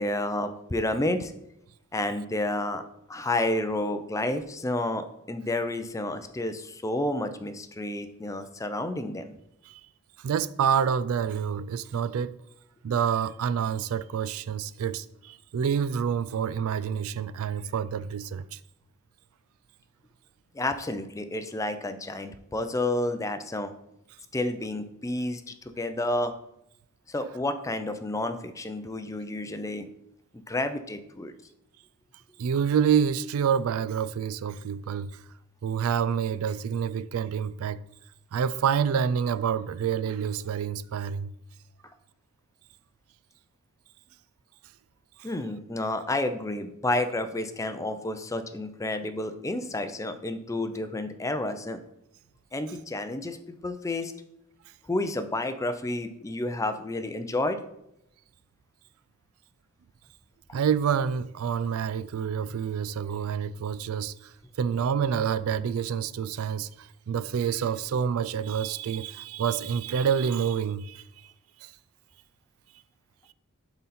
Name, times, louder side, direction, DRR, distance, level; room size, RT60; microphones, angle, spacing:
voice 1, 0.0-1.3 1.9-2.8 3.1-9.3 20.5-23.7 24.3-26.3 27.1-29.9 30.3-31.3 45.2-51.8 52.5-54.1 54.9-57.6, left 1 dB, 15° left, 0.5 m, -30 dB
voice 2, 10.2-12.4 12.8-18.6 32.4-35.2 35.6-37.8 38.3-41.3 45.2-45.3 60.5-71.3 71.6-71.7, right 7 dB, 70° right, 0.3 m, -28 dB
11.0 x 4.0 x 4.2 m
head